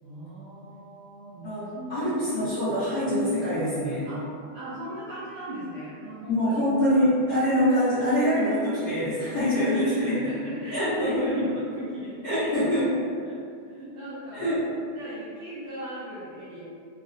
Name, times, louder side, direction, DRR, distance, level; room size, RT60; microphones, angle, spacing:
voice 1, 0.0-2.6 4.1-4.3 4.5-6.6 9.7-12.5 13.2-13.4 13.6-14.6 15.0-16.6, equal, 80° right, -10 dB, 1.5 m, -38 dB
voice 2, 1.4-4.1 6.3-10.1 10.7-11.3 12.2-12.9 14.3-14.6, equal, 90° left, -15 dB, 0.9 m, -24 dB
5.1 x 2.1 x 2.5 m, 2.4 s
omnidirectional pair, 3.6 m